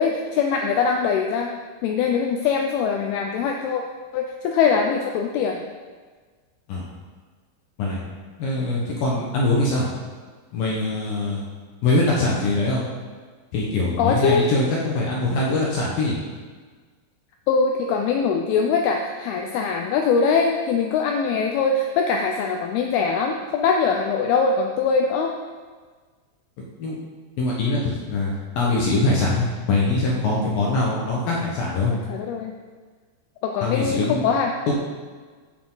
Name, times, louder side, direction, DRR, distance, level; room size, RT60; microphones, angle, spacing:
voice 1, 0.0-1.5 1.8-3.8 4.1-5.6 14.0-14.5 17.5-25.3 32.1-32.5 33.4-34.6, left 5 dB, 90° left, 3 dB, 2.2 m, -22 dB
voice 2, 8.4-9.9 10.5-11.4 11.8-12.8 13.5-16.2 26.8-27.0 27.4-31.9 33.6-34.3 34.7-34.8, left 2 dB, 65° left, -4 dB, 2.5 m, -23 dB
15.0 x 6.8 x 3.9 m, 1.5 s
omnidirectional pair, 5.2 m